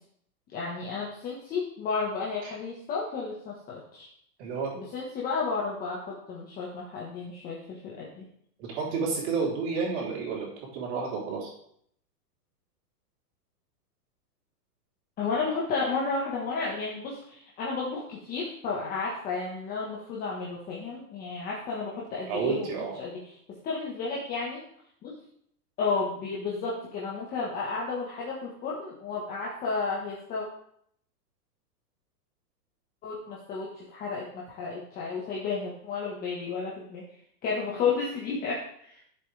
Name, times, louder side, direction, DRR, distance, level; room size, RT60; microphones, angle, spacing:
voice 1, 0.5-4.1 4.7-8.2 15.2-22.7 23.0-23.2 23.6-24.6 25.0-25.1 25.8-30.4 33.0-37.0 37.4-39.0, left 4 dB, 20° left, -5 dB, 1.4 m, -32 dB
voice 2, 4.4-4.7 8.6-11.5 22.3-23.0, right 5 dB, 40° right, -3 dB, 3.7 m, -30 dB
11.0 x 7.6 x 3.4 m, 0.67 s
supercardioid pair, 160°, 48 cm